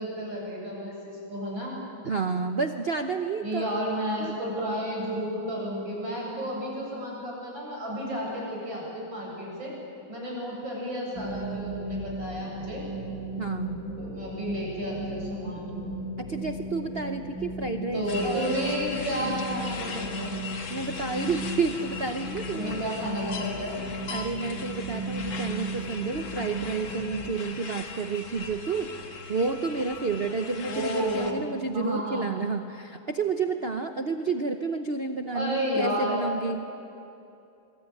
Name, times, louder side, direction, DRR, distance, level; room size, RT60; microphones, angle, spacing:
voice 1, 0.0-1.7 3.4-9.7 10.1-12.8 14.0-15.9 17.9-20.4 22.5-23.8 30.7-31.4 31.7-32.3 35.3-36.2, equal, 70° right, -3 dB, 8.9 m, -32 dB
voice 2, 2.0-3.8 4.2-4.4 13.4-13.8 16.2-18.7 19.2-19.4 20.7-22.8 24.1-28.9 29.3-36.7, right 4 dB, 45° right, 6 dB, 0.8 m, -30 dB
sound 1, 11.1-27.3, equal, 60° left, 4.2 m, -36 dB
sound 2, 18.1-31.3, left 4 dB, 80° left, 2.7 m, -40 dB
25.5 x 23.0 x 9.2 m, 2.7 s
omnidirectional pair, 2.2 m